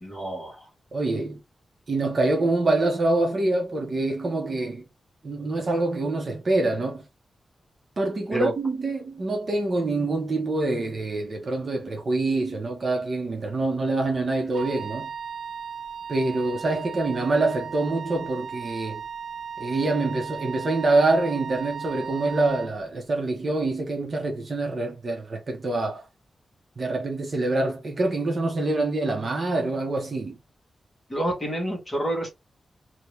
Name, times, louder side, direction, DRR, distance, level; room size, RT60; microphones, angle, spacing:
voice 1, 0.0-0.7 8.3-8.6 31.1-32.3, right 1 dB, 20° left, 1.6 m, -28 dB
voice 2, 0.9-1.4 1.9-4.8 5.2-7.0 8.0-15.1 16.1-19.0 19.6-26.1 26.8-30.4, right 2 dB, 40° right, 0.9 m, -25 dB
Wind instrument woodwind instrument, 14.5-22.7, right 7 dB, 65° right, 0.4 m, -36 dB
2.8 x 2.8 x 3.3 m
wide cardioid pair, 160°, 0 cm